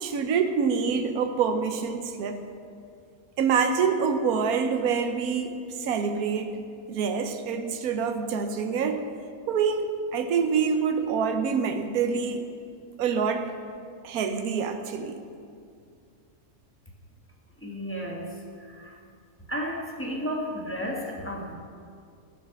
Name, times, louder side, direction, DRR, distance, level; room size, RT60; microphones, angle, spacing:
voice 1, 0.0-2.4 3.4-6.6 6.9-9.0 9.5-12.4 13.0-13.5 14.0-15.2, right 6 dB, 80° right, 7 dB, 1.3 m, -26 dB
voice 2, 17.6-19.0 19.5-21.6, equal, 10° left, -2 dB, 1.6 m, -33 dB
14.0 x 6.5 x 7.7 m, 2.3 s
omnidirectional pair, 1.5 m